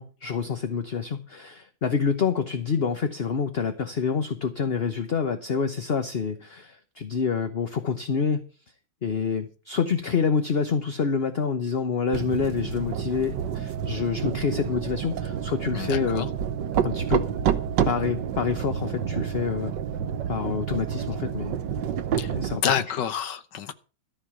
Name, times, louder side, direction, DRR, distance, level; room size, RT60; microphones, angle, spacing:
voice 1, 0.0-8.4 9.0-16.3 16.8-17.2 17.8-19.7 20.3-21.6 22.3-22.9, left 6 dB, 40° left, 0.9 m, -27 dB
sound 1, 12.1-22.6, right 8 dB, 70° right, 1.5 m, -29 dB
voice 2, 15.7-16.3 22.2-22.3 22.6-23.7, left 8 dB, 65° left, 1.5 m, -28 dB
14.0 x 5.5 x 8.7 m
omnidirectional pair, 2.1 m